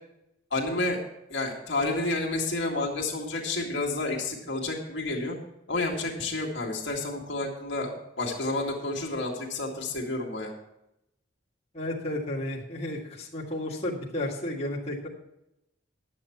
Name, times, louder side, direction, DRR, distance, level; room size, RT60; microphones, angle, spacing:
voice 1, 0.5-1.0 1.3-5.4 5.7-10.5, left 2 dB, 65° left, -1 dB, 2.1 m, -30 dB
voice 2, 11.7-15.1, left 1 dB, 30° left, -5 dB, 2.0 m, -32 dB
11.0 x 7.6 x 5.8 m, 0.86 s
head